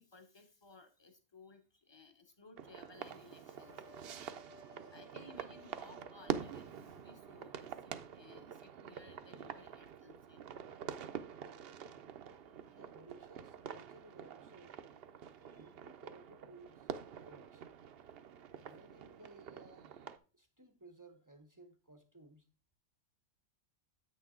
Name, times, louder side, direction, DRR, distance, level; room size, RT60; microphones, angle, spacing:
voice 1, 0.0-4.3 4.8-10.4 12.7-12.8 15.5-15.6, left 3 dB, 25° left, 0.9 m, -60 dB
sound 1, 2.6-20.2, right 8 dB, 60° right, 0.8 m, -46 dB
sound 2, 3.3-9.2, left 2 dB, 60° left, 1.7 m, -62 dB
voice 2, 12.7-14.8 15.4-17.7 18.6-19.9 20.3-22.5, right 2 dB, 20° right, 0.6 m, -59 dB
8.5 x 6.4 x 3.6 m
omnidirectional pair, 1.3 m